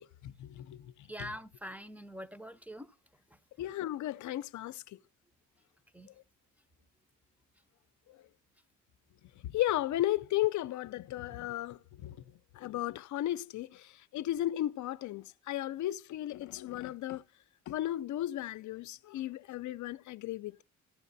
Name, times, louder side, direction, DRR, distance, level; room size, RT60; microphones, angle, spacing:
voice 1, 0.0-0.9 1.2-1.3 3.6-5.0 8.1-8.2 9.4-12.2 12.5-17.2 17.7-20.6, left 14 dB, 70° left, 0.6 m, -35 dB
voice 2, 1.1-2.9 5.9-6.1, equal, 5° right, 0.7 m, -44 dB
15.0 x 11.0 x 2.7 m
cardioid pair, 90°, 30 cm